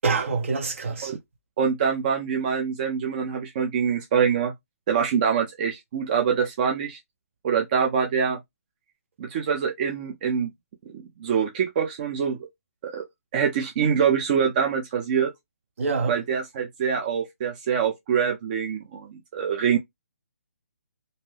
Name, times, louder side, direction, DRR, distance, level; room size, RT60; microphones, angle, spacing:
voice 1, 0.0-1.1 15.8-16.2, right 4 dB, 55° right, 1.0 m, -25 dB
voice 2, 1.6-4.5 4.9-7.0 7.4-8.4 9.2-10.5 10.9-12.4 12.8-13.0 13.3-15.3 16.1-19.8, right 7 dB, 35° right, 0.5 m, -25 dB
2.6 x 2.2 x 3.2 m
hypercardioid pair, 155°, 8 cm